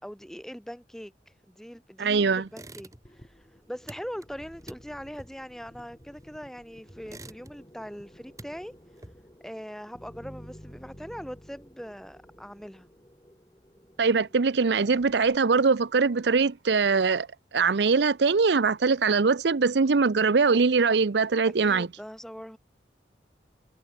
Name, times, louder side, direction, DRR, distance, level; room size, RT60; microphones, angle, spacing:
voice 1, 0.0-8.7 9.4-12.9 21.4-22.6, equal, ahead, 3.5 m, -41 dB
voice 2, 2.0-2.4 14.0-17.3 17.5-21.9, right 4 dB, 75° right, 0.6 m, -22 dB
sound 1, 2.5-3.3 3.5-6.5 6.9-7.8 8.1-9.5, right 2 dB, 20° right, 2.2 m, -48 dB
sound 2, 3.0-15.4, equal, 20° left, 4.6 m, -52 dB
head